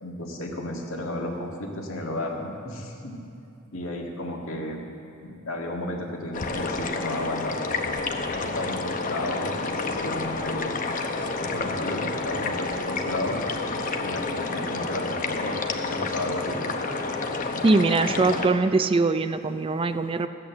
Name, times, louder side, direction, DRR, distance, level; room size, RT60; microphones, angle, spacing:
voice 1, 0.0-3.2 3.7-4.8 5.2-7.6 8.3-10.8 11.4-13.4 14.0-15.6 15.9-16.6, left 1 dB, 75° left, 0 dB, 1.8 m, -33 dB
sound 1, 6.3-18.5, left 3 dB, 40° left, 0.8 m, -29 dB
voice 2, 17.6-20.3, right 3 dB, 25° right, 10 dB, 0.3 m, -22 dB
14.5 x 8.7 x 7.1 m, 2.6 s
head